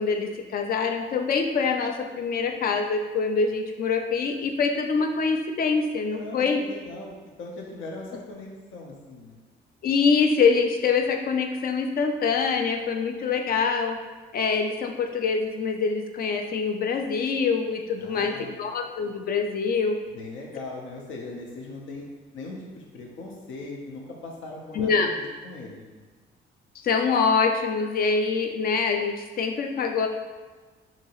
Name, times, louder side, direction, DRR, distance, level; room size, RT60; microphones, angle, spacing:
voice 1, 0.0-6.6 9.8-14.0 14.3-20.0 24.7-25.1 26.8-30.1, left 5 dB, 50° left, 4 dB, 0.4 m, -25 dB
voice 2, 6.1-9.4 18.0-18.7 20.1-22.0 22.3-26.0, left 2 dB, 80° left, -1 dB, 0.7 m, -39 dB
2.9 x 2.7 x 2.9 m, 1.4 s
cardioid pair, 90°, 20 cm